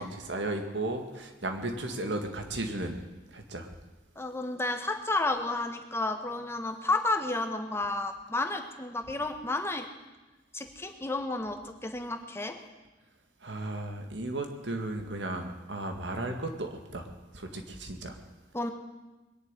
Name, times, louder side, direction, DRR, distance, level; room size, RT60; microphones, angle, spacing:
voice 1, 0.0-3.0 3.3-3.7 13.4-17.1 17.3-18.2, right 2 dB, 75° right, 4 dB, 2.1 m, -35 dB
voice 2, 4.1-9.9 10.5-12.6 18.5-18.7, left 2 dB, 15° left, 5 dB, 1.4 m, -31 dB
21.5 x 7.3 x 9.2 m, 1.1 s
head